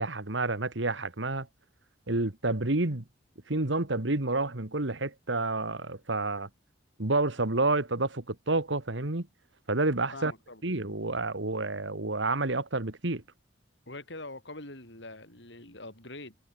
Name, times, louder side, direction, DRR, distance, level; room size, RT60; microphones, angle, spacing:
voice 1, 0.0-1.5 2.1-3.0 3.5-6.5 7.0-9.3 9.7-10.3 10.6-13.2, right 2 dB, 75° right, 1.9 m, -29 dB
voice 2, 10.1-10.6 13.9-16.3, left 2 dB, 65° left, 6.6 m, -44 dB
head